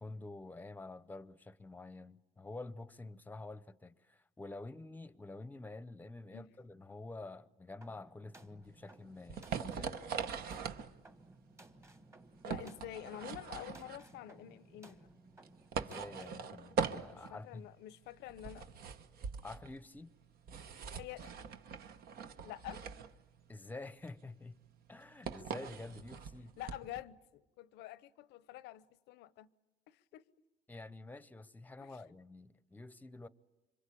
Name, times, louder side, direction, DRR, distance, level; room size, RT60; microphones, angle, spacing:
voice 1, 0.0-10.0 15.8-17.7 19.4-20.1 23.5-24.6 24.9-26.5 30.7-33.3, left 2 dB, 10° left, 0.8 m, -48 dB
sound 1, 7.8-16.5, right 1 dB, 15° right, 1.4 m, -59 dB
sound 2, 8.7-27.0, right 6 dB, 65° right, 1.2 m, -42 dB
voice 2, 12.4-15.1 17.1-18.7 20.9-21.3 22.4-22.8 26.6-29.5 29.9-30.2 31.8-32.1, left 13 dB, 85° left, 0.8 m, -48 dB
27.0 x 25.0 x 8.5 m
cardioid pair, 110°, 17 cm